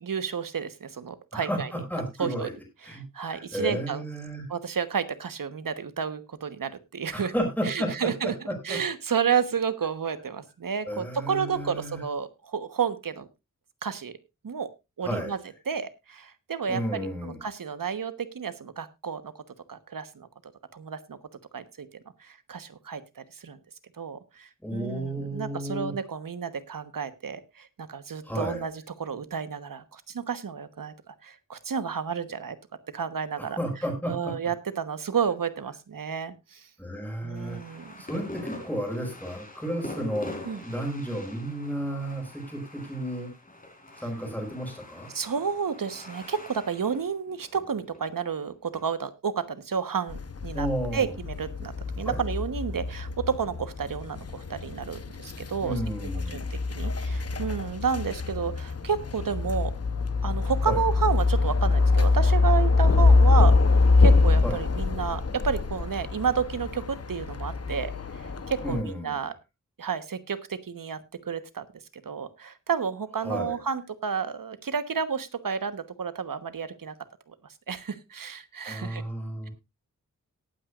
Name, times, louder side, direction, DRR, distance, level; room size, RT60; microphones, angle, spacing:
voice 1, 0.0-1.7 2.2-2.5 2.9-4.0 4.5-7.3 7.6-8.3 8.6-13.3 13.8-14.2 14.4-14.7 15.0-15.4 15.7-19.4 19.7-20.3 20.7-21.2 21.5-21.9 22.2-23.6 24.0-28.7 29.0-32.6 32.9-33.6 34.1-36.7 37.2-37.9 40.5-40.6 45.1-50.7 50.9-55.8 56.3-59.7 60.2-69.3 69.8-71.6 72.0-76.9 77.3-77.4 77.7-79.0, right 6 dB, 80° right, 12 dB, 1.2 m, -31 dB
voice 2, 1.3-2.5 2.8-4.5 7.1-8.8 10.8-12.0 15.0-15.4 16.7-17.4 24.6-25.9 28.2-28.7 33.4-34.3 36.8-37.6 38.0-40.3 40.6-43.3 44.0-45.1 50.5-51.1 52.0-52.2 55.6-56.6 60.7-60.8 64.4-64.6 68.6-69.2 73.2-73.6 78.7-79.5, equal, 5° left, 0 dB, 5.4 m, -32 dB
sound 1, 37.4-48.8, left 1 dB, 25° left, 4.2 m, -44 dB
sound 2, 50.1-68.8, left 3 dB, 50° left, 0.9 m, -24 dB
18.5 x 9.1 x 2.5 m, 0.24 s
wide cardioid pair, 95°, 32 cm